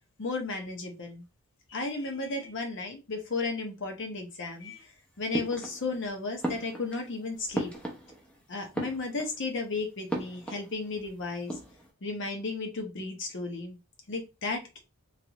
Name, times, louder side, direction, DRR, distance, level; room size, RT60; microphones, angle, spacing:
voice 1, 0.2-1.2 1.7-4.9 5.2-7.7 8.5-11.6 12.0-13.8 14.1-14.8, left 3 dB, 55° left, 4 dB, 0.9 m, -34 dB
sound 1, 5.3-6.1 6.4-8.4 8.6-9.5 10.1-11.1 11.3-11.9, right 1 dB, 5° left, 0.7 m, -36 dB
3.2 x 2.6 x 2.9 m, 0.27 s
head